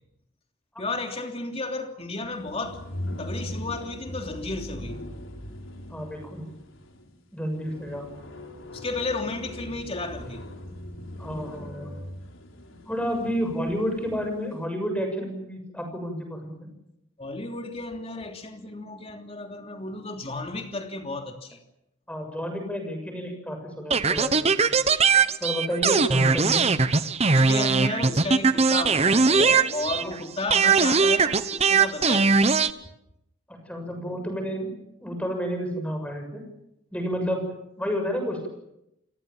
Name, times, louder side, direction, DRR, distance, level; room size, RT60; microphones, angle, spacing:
voice 1, 0.8-2.8 3.2-5.0 8.7-10.5 17.2-21.6 24.7-24.8 27.3-32.5, left 2 dB, 30° left, 3.2 m, -33 dB
sound 1, 2.4-14.4, left 1 dB, 75° left, 4.3 m, -40 dB
voice 2, 5.9-6.5 7.3-8.1 11.2-11.9 12.8-16.7 22.1-24.5 25.4-26.7 30.0-30.1 33.5-34.7 35.0-36.4 36.9-37.4 37.8-38.5, equal, 5° left, 6.8 m, -30 dB
sound 2, 23.9-30.2 30.5-32.7, right 4 dB, 30° right, 1.0 m, -20 dB
29.5 x 21.0 x 7.4 m
head